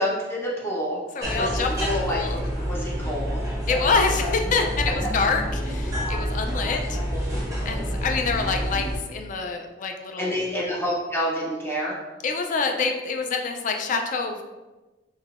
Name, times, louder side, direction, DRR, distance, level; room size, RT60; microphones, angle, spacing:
voice 1, 0.0-1.0 1.3-3.5 6.5-6.6 7.6-7.8 10.2-11.9, equal, 15° left, -5 dB, 0.7 m, -28 dB
voice 2, 1.2-2.4 3.7-7.0 7.7-10.3 12.2-14.4, left 4 dB, 45° left, 4 dB, 0.3 m, -26 dB
sound 1, 1.2-9.0, equal, 20° right, 0.9 m, -28 dB
3.6 x 2.7 x 2.4 m, 1.2 s
head